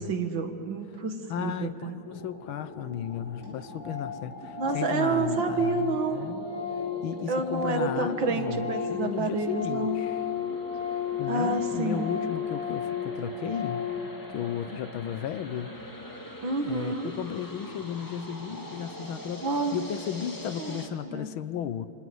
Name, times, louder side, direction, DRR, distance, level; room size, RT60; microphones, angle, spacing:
voice 1, 0.0-2.0 4.6-6.3 7.3-10.0 11.3-12.2 16.4-17.1 19.4-19.8 20.6-21.3, right 3 dB, 65° right, 6 dB, 2.4 m, -29 dB
voice 2, 1.3-6.5 7.0-10.2 11.2-13.8 14.3-15.7 16.6-21.9, left 9 dB, 75° left, 13 dB, 1.6 m, -34 dB
sound 1, 2.1-20.9, left 1 dB, 10° left, 2.0 m, -43 dB
Organ, 2.8-2.9 3.1-3.2 3.4-3.5 3.8-4.2 4.5-8.1 8.3-14.0, left 7 dB, 40° right, 7.9 m, -33 dB
27.0 x 26.5 x 7.9 m, 2.5 s
omnidirectional pair, 2.3 m